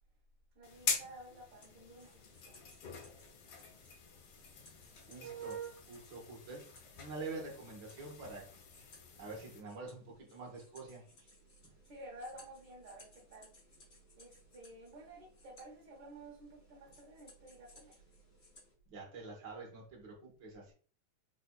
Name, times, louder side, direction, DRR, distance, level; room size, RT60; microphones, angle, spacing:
voice 1, 0.5-2.6 11.9-13.5 14.2-18.0, right 1 dB, 85° right, -2 dB, 1.0 m, -52 dB
sound 1, 0.6-9.6, left 5 dB, 75° left, 1.2 m, -44 dB
sound 2, 1.5-18.7, left 2 dB, 55° left, 0.9 m, -64 dB
voice 2, 5.1-6.6 7.0-8.5 8.7-8.9 9.2-11.3 16.9-17.0 18.9-20.7, right 4 dB, 55° right, -2 dB, 1.1 m, -46 dB
4.5 x 2.5 x 2.2 m, 0.40 s
omnidirectional pair, 3.3 m